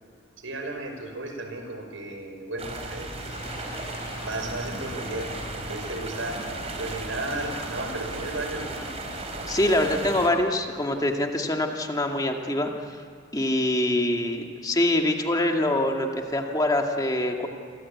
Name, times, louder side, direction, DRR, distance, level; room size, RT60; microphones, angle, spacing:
voice 1, 0.4-3.4 4.2-6.4 6.8-8.8, right 2 dB, 85° right, 4 dB, 5.6 m, -34 dB
sound 1, 2.6-10.3, right 2 dB, 30° right, 3.9 m, -35 dB
sound 2, 3.3-11.2, left 1 dB, 50° left, 6.6 m, -45 dB
voice 2, 9.5-13.0 13.3-17.5, left 1 dB, 20° left, 2 dB, 2.0 m, -24 dB
29.5 x 23.0 x 8.6 m, 2.1 s
head